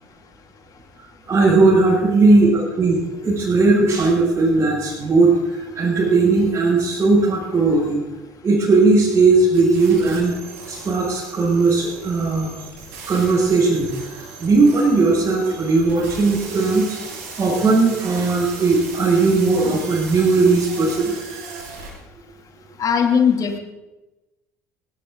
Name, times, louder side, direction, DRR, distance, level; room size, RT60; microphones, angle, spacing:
voice 1, 1.3-8.0 8.4-10.3 10.7-12.5 13.1-13.9 14.1-17.0 17.4-21.7, right 3 dB, 30° right, -7 dB, 6.8 m, -17 dB
sound 1, 9.5-21.9, right 4 dB, 70° right, 6.7 m, -37 dB
voice 2, 22.8-23.6, left 7 dB, 40° left, 5 dB, 2.8 m, -18 dB
19.5 x 17.5 x 3.9 m, 1.0 s
hypercardioid pair, 65°, 9 cm